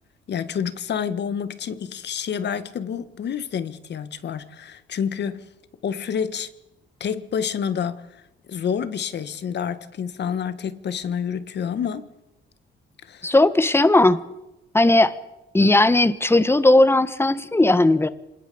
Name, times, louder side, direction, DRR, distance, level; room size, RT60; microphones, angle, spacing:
voice 1, 0.3-5.5 5.8-6.5 7.0-8.1 8.5-12.1 13.0-13.3, left 7 dB, 60° left, 12 dB, 1.7 m, -28 dB
voice 2, 13.2-14.2 14.7-15.1 15.5-18.1, left 2 dB, 10° left, 13 dB, 1.4 m, -17 dB
26.5 x 20.5 x 7.1 m, 0.94 s
cardioid pair, 90°, 20 cm